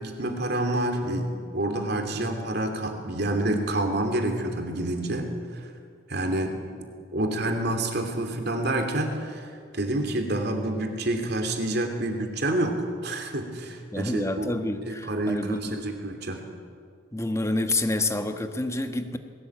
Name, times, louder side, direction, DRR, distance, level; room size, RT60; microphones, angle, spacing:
voice 1, 0.0-5.3 6.1-6.5 7.1-14.5 14.9-16.4, right 1 dB, 55° right, 4 dB, 2.9 m, -28 dB
voice 2, 13.9-15.8 17.1-19.2, left 2 dB, 15° left, 6 dB, 1.2 m, -28 dB
21.0 x 17.0 x 8.7 m, 2.3 s
head